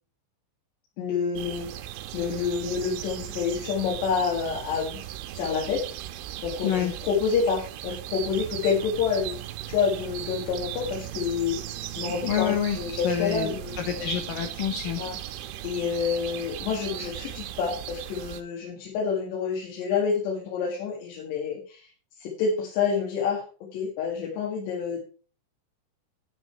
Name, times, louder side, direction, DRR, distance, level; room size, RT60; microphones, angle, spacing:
voice 1, 1.0-1.9 2.1-5.0 5.3-5.8 6.4-9.4 9.7-11.6 12.0-14.1 15.0-15.2 15.6-21.9 22.2-25.0, left 6 dB, 70° left, -3 dB, 4.0 m, -28 dB
sound 1, 1.4-18.4, right 13 dB, 85° right, 3.3 m, -37 dB
voice 2, 12.3-15.0, left 9 dB, 85° left, 6 dB, 1.9 m, -28 dB
10.0 x 9.9 x 4.6 m, 0.39 s
omnidirectional pair, 5.5 m